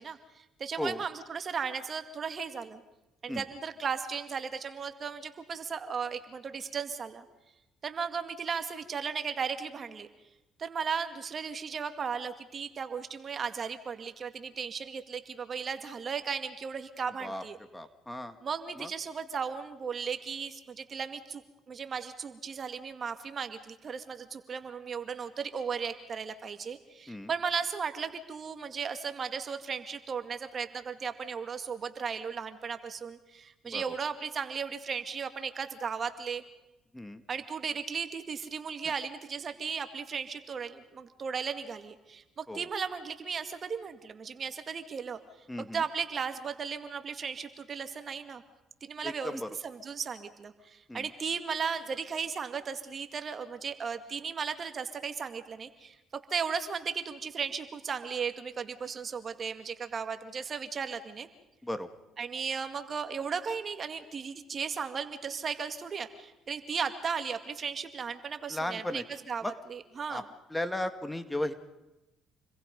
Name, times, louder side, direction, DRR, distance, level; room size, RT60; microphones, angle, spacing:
voice 1, 0.0-2.8 3.2-7.3 7.8-10.1 10.6-17.6 18.4-21.4 21.7-36.4 37.3-45.2 45.6-48.4 48.8-61.3 62.2-70.3, right 6 dB, 45° right, 9 dB, 2.1 m, -36 dB
voice 2, 17.7-18.4 18.8-18.9 27.1-27.3 33.6-33.8 36.9-37.2 42.5-42.7 45.5-45.8 49.0-49.5 50.9-51.1 61.6-61.9 68.5-69.0 69.4-69.5 70.1-70.2 70.5-71.5, left 1 dB, 10° left, 9 dB, 2.0 m, -35 dB
29.0 x 22.0 x 5.4 m, 0.99 s
supercardioid pair, 75°, 0 cm